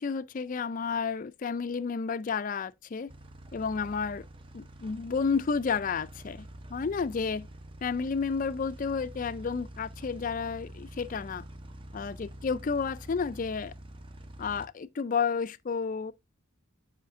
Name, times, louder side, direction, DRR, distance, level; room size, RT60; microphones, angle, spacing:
voice 1, 0.0-3.1 3.5-4.2 4.5-7.5 7.8-11.4 11.9-13.7 14.4-16.1, left 5 dB, 40° left, 0.3 m, -31 dB
sound 1, 3.1-14.7, right 1 dB, 25° right, 0.6 m, -46 dB
10.5 x 4.9 x 2.4 m
head